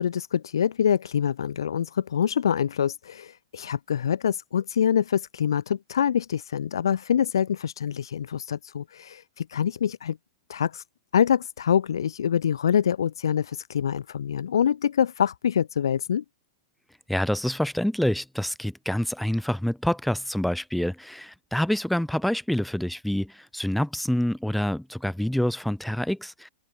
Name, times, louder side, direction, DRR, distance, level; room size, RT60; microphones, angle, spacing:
voice 1, 0.0-10.2 10.5-10.8 11.1-16.2, left 8 dB, 65° left, 4.2 m, -25 dB
voice 2, 17.1-26.5, left 1 dB, ahead, 5.3 m, -27 dB
figure-of-eight pair, 100°, 3 cm